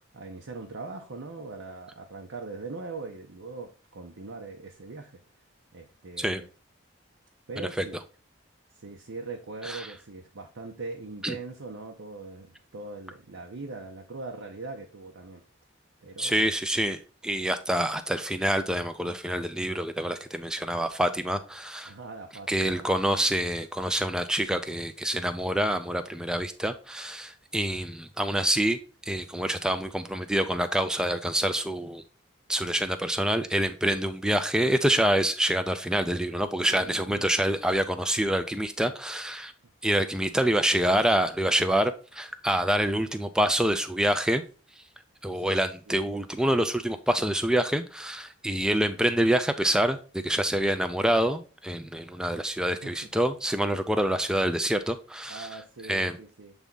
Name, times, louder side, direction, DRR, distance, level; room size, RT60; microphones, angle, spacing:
voice 1, 0.1-5.2 5.7-6.5 7.5-8.0 8.7-15.4 16.0-16.5 21.8-22.9 33.8-34.3 36.8-37.3 45.3-46.3 52.8-53.0 55.3-56.5, right 3 dB, 80° right, 0.8 m, -41 dB
voice 2, 16.2-21.9 22.5-28.8 29.1-32.0 32.5-39.5 39.8-44.4 45.2-55.5 55.9-56.2, right 1 dB, 5° right, 0.3 m, -26 dB
7.2 x 3.5 x 3.8 m
head